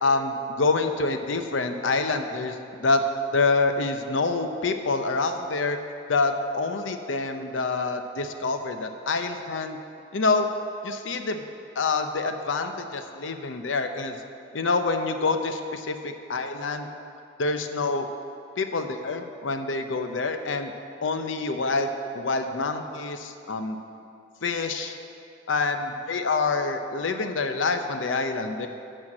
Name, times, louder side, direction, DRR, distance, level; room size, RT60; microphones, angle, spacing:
voice 1, 0.0-3.0 3.3-5.8 6.1-9.8 10.1-10.5 10.8-11.4 11.8-14.2 14.5-16.9 17.4-18.1 18.6-20.7 21.0-23.8 24.4-25.0 25.5-28.7, left 3 dB, 85° left, 7 dB, 0.6 m, -26 dB
12.0 x 4.5 x 7.6 m, 2.5 s
head